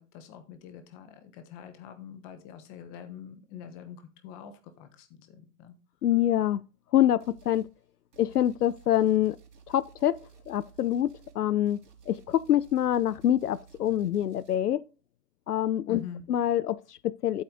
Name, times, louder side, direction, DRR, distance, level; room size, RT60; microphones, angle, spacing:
voice 1, 0.0-5.7 15.9-16.3, left 8 dB, 20° left, 1.2 m, -45 dB
voice 2, 6.0-6.6 6.9-7.7 8.2-9.4 9.7-10.2 10.5-11.8 12.1-14.8 15.5-16.0 16.3-17.4, left 11 dB, 75° left, 0.7 m, -25 dB
sound 1, 7.2-7.7 8.1-14.6, right 6 dB, 80° right, 3.6 m, -55 dB
12.0 x 7.9 x 3.9 m
hypercardioid pair, 155°, 47 cm